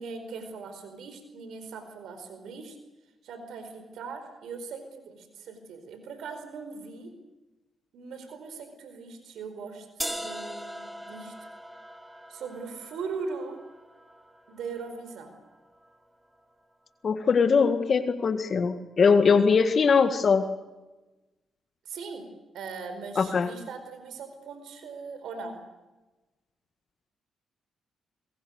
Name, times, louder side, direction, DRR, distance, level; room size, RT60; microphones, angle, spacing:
voice 1, 0.0-2.7 3.2-7.1 7.9-11.3 12.3-13.6 14.5-15.3 21.8-22.2 22.5-25.6, right 4 dB, 80° right, 8 dB, 4.7 m, -40 dB
sound 1, 10.0-16.0, equal, 5° right, 2.5 m, -41 dB
voice 2, 17.0-20.5 23.2-23.5, left 5 dB, 50° left, 8 dB, 1.8 m, -21 dB
26.0 x 22.5 x 6.6 m, 1.1 s
cardioid pair, 80°, 0 cm